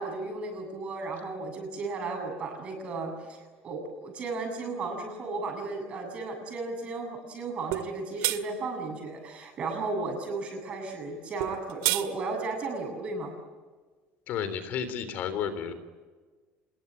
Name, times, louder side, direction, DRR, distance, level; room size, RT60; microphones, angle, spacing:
voice 1, 0.0-13.3, right 3 dB, 30° right, 3 dB, 7.7 m, -34 dB
sound 1, 7.7-7.9 8.2-8.4 11.4-12.1, right 18 dB, 85° right, 2.0 m, -27 dB
voice 2, 14.3-15.7, left 7 dB, 45° left, 12 dB, 3.5 m, -32 dB
27.0 x 22.0 x 9.6 m, 1.4 s
cardioid pair, 180°, 4 cm